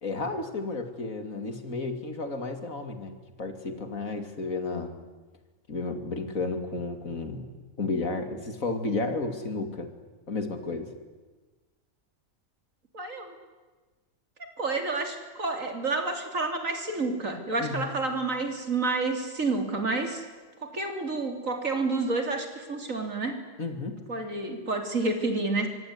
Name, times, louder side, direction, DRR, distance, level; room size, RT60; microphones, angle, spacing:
voice 1, 0.0-4.9 5.7-7.5 7.8-9.9 10.3-10.9 17.6-17.9 23.6-24.0, left 3 dB, 85° left, 7 dB, 3.1 m, -32 dB
voice 2, 12.9-13.3 14.4-20.2 20.6-23.4 24.1-25.7, right 3 dB, 75° right, 5 dB, 3.8 m, -29 dB
24.5 x 24.0 x 9.8 m, 1.3 s
omnidirectional pair, 1.4 m